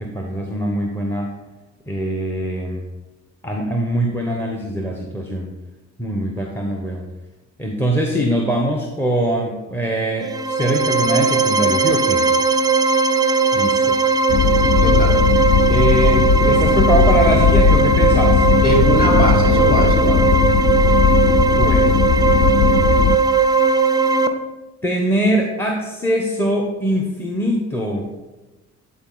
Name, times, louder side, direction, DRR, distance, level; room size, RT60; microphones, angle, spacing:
voice 1, 0.0-1.3 1.9-2.9 3.4-5.5 6.0-7.1 7.6-12.3 13.5-14.0 15.7-18.4 21.6-22.0 24.8-28.1, right 1 dB, 10° left, 1 dB, 0.8 m, -22 dB
sound 1, 10.2-24.3, right 4 dB, 15° right, 0.4 m, -18 dB
sound 2, 14.3-23.2, left 6 dB, 50° left, 0.5 m, -17 dB
voice 2, 14.8-15.2 18.6-20.3, equal, 30° left, 0 dB, 2.4 m, -21 dB
9.5 x 4.2 x 3.9 m, 1.1 s
cardioid pair, 90°, 30 cm